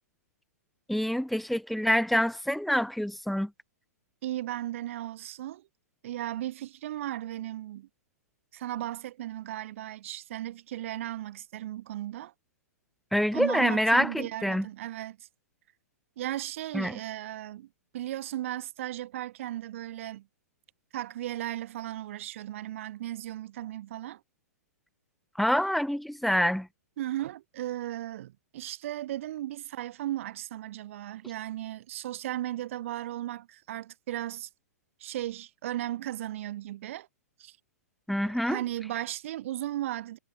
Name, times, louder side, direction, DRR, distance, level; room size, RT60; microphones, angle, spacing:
voice 1, 0.9-3.5 13.1-14.7 16.7-17.0 25.4-26.7 38.1-38.6, equal, ahead, 1.4 m, -26 dB
voice 2, 4.2-5.7 6.0-7.9 8.5-12.3 13.3-15.3 16.2-17.7 17.9-20.3 20.9-24.2 27.0-34.5 35.0-37.1 37.4-37.6 38.2-40.2, right 13 dB, 50° right, 2.1 m, -36 dB
figure-of-eight pair, 115°, 9 cm